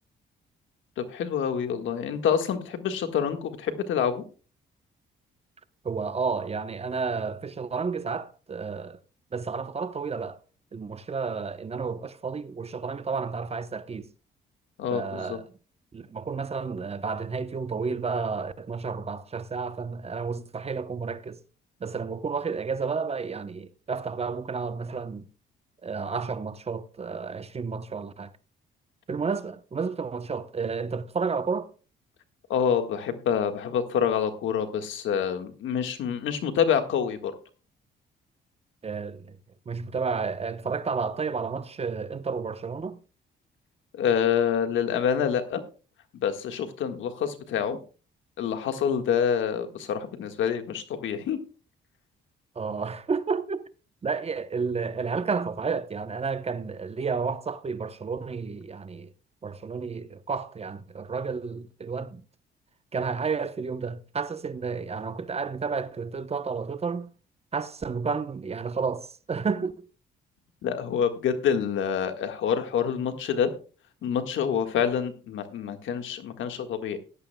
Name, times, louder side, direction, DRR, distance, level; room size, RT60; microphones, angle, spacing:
voice 1, 1.0-4.2 14.8-15.4 32.5-37.3 43.9-45.6 46.2-47.8 48.4-51.4 70.6-73.5 74.0-77.0, left 8 dB, 75° left, 1.6 m, -27 dB
voice 2, 5.8-9.0 9.3-10.4 10.7-14.1 14.9-15.4 15.9-21.4 21.8-25.2 25.8-28.3 29.1-31.7 38.8-39.4 39.7-43.0 52.6-53.6 54.0-59.1 59.4-62.2 62.9-67.1 67.5-69.9, right 5 dB, 30° right, 0.8 m, -31 dB
16.5 x 11.5 x 2.2 m
cardioid pair, 90°, 20 cm